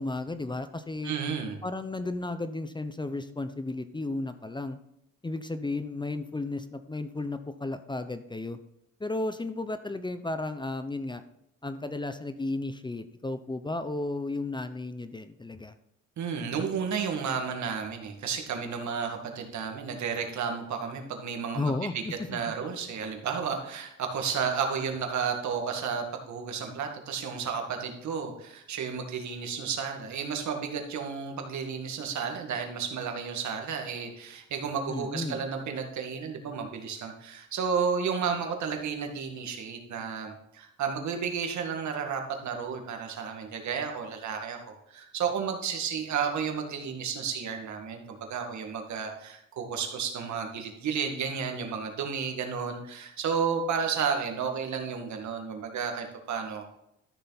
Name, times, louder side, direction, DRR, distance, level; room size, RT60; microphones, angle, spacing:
voice 1, 0.0-1.1 1.6-4.8 5.2-8.6 9.0-11.2 11.6-15.7 21.5-22.2 34.9-35.4, left 2 dB, 15° left, 10 dB, 0.7 m, -33 dB
voice 2, 1.0-1.6 16.2-22.0 22.3-56.7, right 6 dB, 70° right, 4 dB, 2.1 m, -32 dB
13.0 x 6.7 x 4.1 m, 0.79 s
cardioid pair, 90°, 30 cm